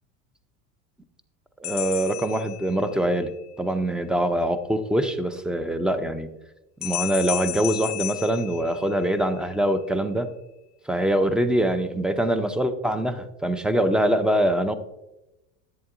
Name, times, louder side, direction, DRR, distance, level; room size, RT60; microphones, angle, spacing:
sound 1, 1.6-3.2 6.8-9.3, left 16 dB, 55° left, 0.6 m, -33 dB
voice 1, 1.6-3.3 3.6-6.3 6.8-10.3 10.9-14.7, right 1 dB, ahead, 10 dB, 0.5 m, -24 dB
10.5 x 8.2 x 2.5 m, 0.97 s
hypercardioid pair, 95°, 43 cm